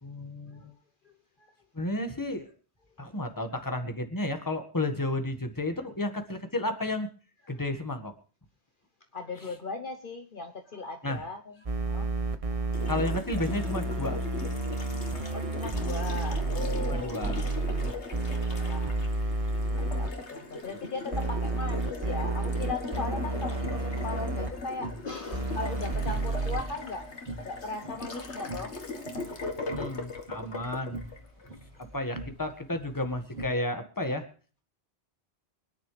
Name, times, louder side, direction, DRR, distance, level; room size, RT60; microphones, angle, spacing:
voice 1, 0.0-0.7 1.7-2.5 3.0-7.1 7.5-8.1 11.0-11.2 12.9-14.2 16.9-17.5 29.7-31.0 31.9-34.2, left 1 dB, 20° left, 6 dB, 1.7 m, -32 dB
voice 2, 9.1-12.1 12.4-12.7 15.3-18.0 18.3-19.0 19.8-27.1 27.4-28.8 31.7-31.8, left 3 dB, 50° left, 4 dB, 1.2 m, -38 dB
sound 1, 11.7-20.1 21.1-24.5 25.3-26.6, right 2 dB, 35° right, 1.1 m, -30 dB
Water tap faucet, 12.7-31.9, left 3 dB, 85° left, 2.0 m, -39 dB
sound 2, 23.6-33.4, right 1 dB, 60° right, 3.9 m, -45 dB
25.0 x 10.0 x 3.3 m, 0.41 s
omnidirectional pair, 1.1 m